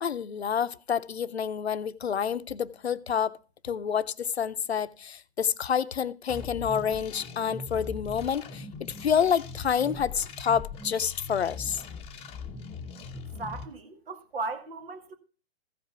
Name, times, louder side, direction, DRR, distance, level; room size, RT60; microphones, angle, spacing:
voice 1, 0.0-3.4 3.6-8.7 9.0-11.8, left 7 dB, 80° left, 0.7 m, -28 dB
sound 1, 6.3-13.7, left 4 dB, 20° left, 0.9 m, -40 dB
voice 2, 13.4-15.1, right 3 dB, 65° right, 2.2 m, -36 dB
15.0 x 5.0 x 5.8 m
figure-of-eight pair, 120°, 31 cm